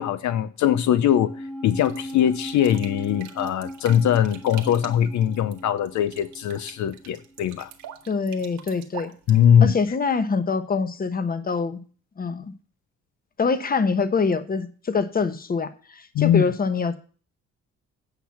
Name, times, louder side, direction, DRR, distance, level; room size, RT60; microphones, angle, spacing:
voice 1, 0.0-1.3 1.6-7.7 9.3-9.7 16.1-16.4, left 9 dB, 70° left, 0.7 m, -21 dB
sound 1, 1.1-7.7 7.9-8.0, equal, 5° left, 1.8 m, -39 dB
sound 2, 1.7-9.9, right 9 dB, 80° right, 1.4 m, -45 dB
voice 2, 8.1-9.1 9.6-11.8 12.2-12.5 13.4-17.0, left 4 dB, 30° left, 1.0 m, -25 dB
9.1 x 5.8 x 5.7 m
cardioid pair, 90°, 30 cm